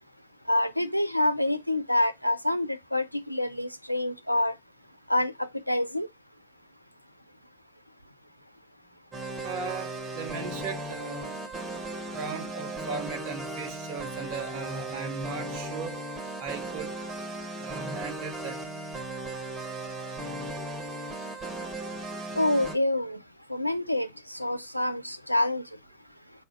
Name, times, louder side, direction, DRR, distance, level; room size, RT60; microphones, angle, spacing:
voice 1, 0.5-4.5 5.1-6.1 22.4-23.2 23.5-25.6, left 1 dB, 90° left, 0.3 m, -27 dB
sound 1, 9.1-22.8, right 2 dB, 20° right, 0.9 m, -36 dB
voice 2, 9.4-11.4 12.1-16.0 16.4-16.9 17.6-18.6, right 5 dB, 45° right, 0.7 m, -37 dB
4.0 x 2.4 x 3.5 m
figure-of-eight pair, 90°, 0 cm